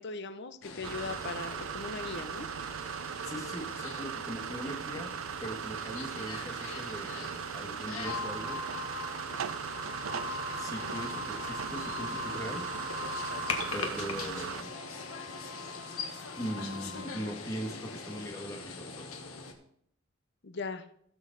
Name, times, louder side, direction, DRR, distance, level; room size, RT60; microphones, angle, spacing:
voice 1, 0.0-2.5 20.4-20.9, left 4 dB, 55° left, 10 dB, 0.7 m, -39 dB
sound 1, 0.6-19.5, left 4 dB, 90° left, 1.4 m, -43 dB
sound 2, 0.8-14.6, right 7 dB, 75° right, 0.5 m, -38 dB
voice 2, 3.2-5.1 5.4-8.6 10.6-12.7 13.7-14.7 16.4-19.1, equal, 15° left, 2 dB, 1.6 m, -40 dB
sound 3, 8.0-18.2, left 3 dB, 30° right, 2.9 m, -42 dB
16.5 x 6.3 x 4.0 m, 0.69 s
head